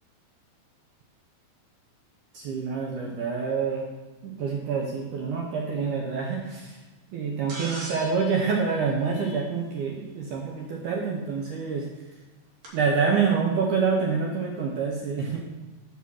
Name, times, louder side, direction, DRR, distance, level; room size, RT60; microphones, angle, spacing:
voice 1, 2.3-3.9 4.2-6.8 7.1-11.9 12.7-15.5, right 5 dB, 80° right, 0 dB, 1.8 m, -27 dB
sound 1, 7.5-9.8 11.4-11.5 12.6-12.7, right 1 dB, 60° right, 3.4 m, -41 dB
6.0 x 5.8 x 6.2 m, 1.2 s
omnidirectional pair, 4.6 m